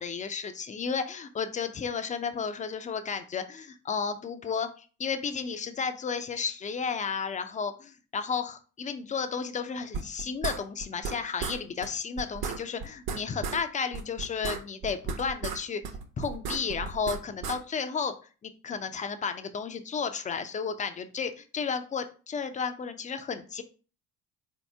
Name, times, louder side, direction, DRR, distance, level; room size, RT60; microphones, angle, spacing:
voice 1, 0.0-15.8 16.2-18.1 18.4-23.6, left 6 dB, 15° left, 9 dB, 0.4 m, -33 dB
sound 1, 9.9-11.1 11.4-11.6 11.8-11.9 12.2-13.6 13.9-15.6 15.8-17.6, right 5 dB, 45° right, 0.8 m, -34 dB
4.0 x 2.8 x 3.3 m, 0.36 s
hypercardioid pair, 55°, 49 cm